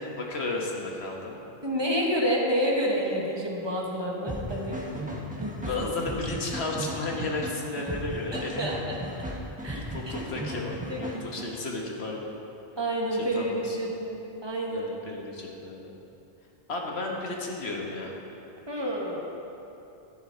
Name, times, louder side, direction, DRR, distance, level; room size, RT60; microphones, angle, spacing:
voice 1, 0.0-1.4 5.7-8.6 9.7-12.3 13.1-13.8 14.7-15.9 16.7-18.1, left 2 dB, 80° left, 0 dB, 1.6 m, -33 dB
voice 2, 1.6-4.8 5.4-5.9 8.3-8.8 9.6-10.1 10.9-11.3 12.8-14.9 18.7-19.2, equal, 25° right, -2 dB, 1.5 m, -29 dB
sound 1, 4.3-11.5, equal, 10° right, 1.3 m, -36 dB
11.0 x 9.8 x 4.4 m, 2.9 s
omnidirectional pair, 1.1 m